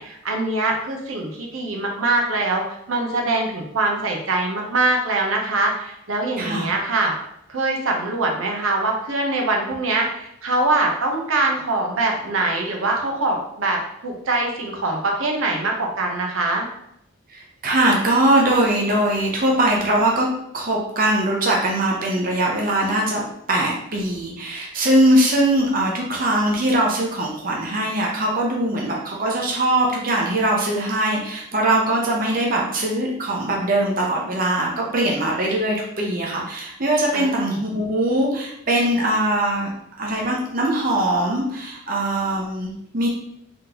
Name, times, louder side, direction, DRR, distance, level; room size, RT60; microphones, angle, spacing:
voice 1, 0.0-2.6 2.9-7.1 7.5-16.7 37.1-37.5, right 2 dB, 80° right, 1 dB, 0.8 m, -23 dB
voice 2, 6.4-6.7 17.3-20.3 20.5-39.7 40.0-43.1, right 1 dB, 45° right, -2 dB, 0.7 m, -21 dB
3.7 x 3.6 x 2.9 m, 0.75 s
head